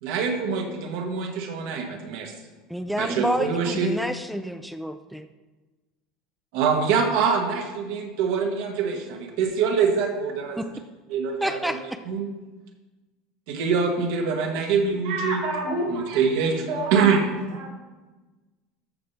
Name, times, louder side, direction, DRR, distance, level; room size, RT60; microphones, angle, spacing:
voice 1, 0.0-2.3 3.0-3.9 6.5-9.0 9.4-10.6 11.1-11.8 12.0-12.3 13.5-15.4 16.1-16.6 16.9-17.2, right 6 dB, 70° right, 3 dB, 1.7 m, -24 dB
voice 2, 2.7-5.3 10.6-10.7 11.4-12.0, equal, ahead, 9 dB, 0.4 m, -29 dB
voice 3, 15.0-16.9 17.3-17.7, right 2 dB, 90° right, -3 dB, 3.4 m, -30 dB
13.5 x 5.8 x 3.5 m, 1.2 s
supercardioid pair, 150°, 0 cm